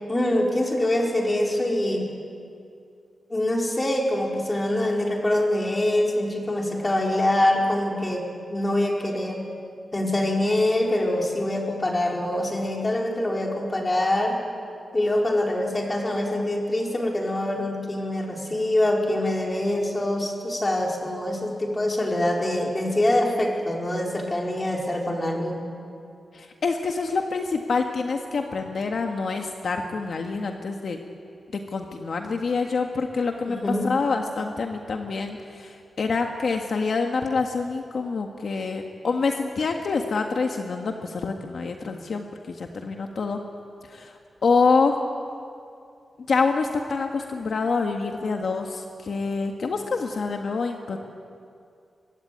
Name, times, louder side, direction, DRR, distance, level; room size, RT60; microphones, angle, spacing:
voice 1, 0.1-2.1 3.3-9.5 9.9-14.4 14.9-25.7 33.5-33.9, left 1 dB, 20° left, -1 dB, 4.7 m, -24 dB
voice 2, 26.3-31.0 31.7-33.6 33.8-43.4 43.9-45.0 46.3-51.0, left 4 dB, 65° left, 3 dB, 1.7 m, -26 dB
24.5 x 23.5 x 9.6 m, 2.4 s
wide cardioid pair, 125°, 0 cm